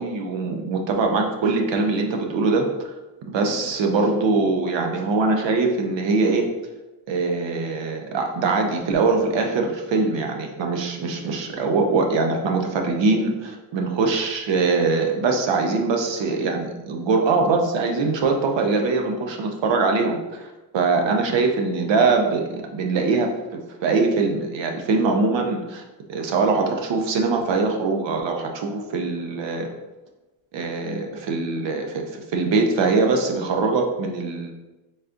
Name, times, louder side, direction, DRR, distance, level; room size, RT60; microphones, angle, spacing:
voice 1, 0.0-2.9 3.3-6.5 7.1-23.3 23.8-25.8 26.1-29.7 30.5-34.5, right 3 dB, 65° right, 3 dB, 0.8 m, -22 dB
4.1 x 3.5 x 2.5 m, 1.1 s
cardioid pair, 120°, 47 cm